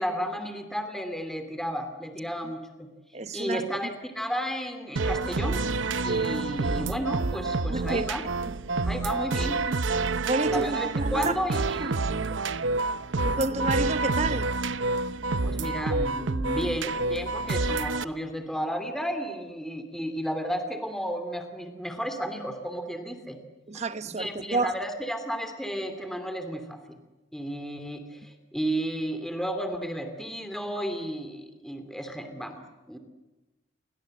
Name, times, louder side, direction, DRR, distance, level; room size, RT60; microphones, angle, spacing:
voice 1, 0.0-2.9 3.3-5.7 6.0-8.2 8.9-9.7 10.5-11.9 12.2-12.4 15.4-23.4 23.7-26.9 27.3-33.0, equal, ahead, 2.5 m, -33 dB
voice 2, 3.1-3.7 7.7-8.5 10.2-11.4 11.8-11.9 13.2-14.5 23.7-24.8, right 2 dB, 35° right, 1.1 m, -30 dB
sound 1, 5.0-18.0, right 3 dB, 85° right, 0.8 m, -28 dB
29.5 x 23.5 x 7.7 m
head